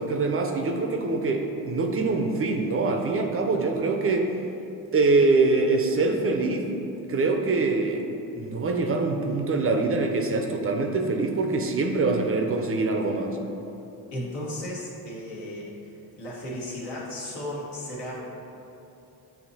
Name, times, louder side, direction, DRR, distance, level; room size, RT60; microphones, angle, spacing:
voice 1, 0.0-4.3 4.9-6.7 7.1-8.1 8.4-13.4, right 3 dB, 35° right, 3 dB, 0.5 m, -24 dB
voice 2, 14.1-15.7 16.2-18.1, left 1 dB, 75° left, -5 dB, 1.3 m, -35 dB
7.0 x 2.8 x 2.7 m, 2.8 s
supercardioid pair, 65°, 42 cm